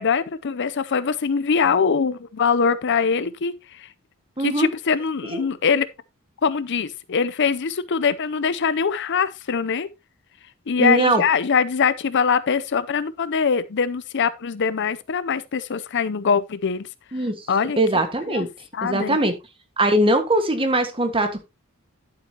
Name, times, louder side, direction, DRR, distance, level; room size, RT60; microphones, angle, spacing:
voice 1, 0.0-3.9 4.4-5.9 6.4-9.9 10.7-16.9 17.1-17.8 18.3-18.5 18.7-19.2, left 6 dB, 55° left, 0.5 m, -23 dB
voice 2, 4.4-4.7 5.3-5.4 10.8-11.2 17.1-17.3 17.8-18.5 18.8-19.3 19.8-21.4, right 1 dB, 25° right, 1.5 m, -21 dB
11.5 x 7.6 x 2.8 m
head